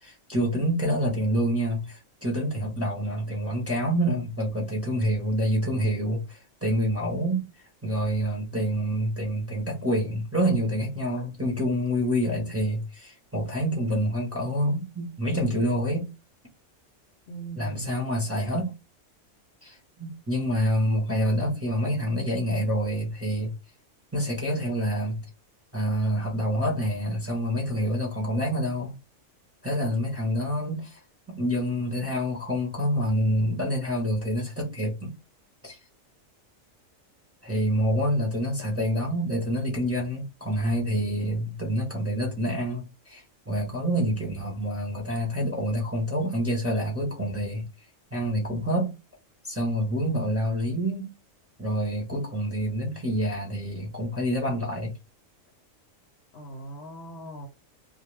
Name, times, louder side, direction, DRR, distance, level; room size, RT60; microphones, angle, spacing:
voice 1, 0.0-7.5 7.8-16.1 17.6-18.7 19.6-23.5 24.1-25.2 25.7-29.0 29.6-31.0 31.4-35.1 35.6-35.8 37.4-47.6 48.1-48.9 49.4-51.1 51.6-54.9, equal, 15° right, 0.7 m, -27 dB
voice 2, 17.3-18.0 56.3-57.5, right 2 dB, 65° left, 0.7 m, -40 dB
2.4 x 2.2 x 3.1 m
omnidirectional pair, 1.4 m